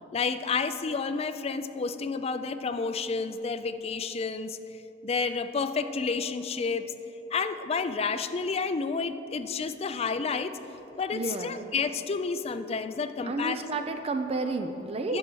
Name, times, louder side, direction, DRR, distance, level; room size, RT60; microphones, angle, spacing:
voice 1, 0.1-4.6 5.0-6.9 7.3-10.6 11.0-13.6 15.1-15.2, left 4 dB, 35° left, 10 dB, 0.4 m, -30 dB
voice 2, 11.1-11.6 13.2-15.2, right 3 dB, 35° right, 7 dB, 0.4 m, -31 dB
10.5 x 5.4 x 6.2 m, 3.0 s
head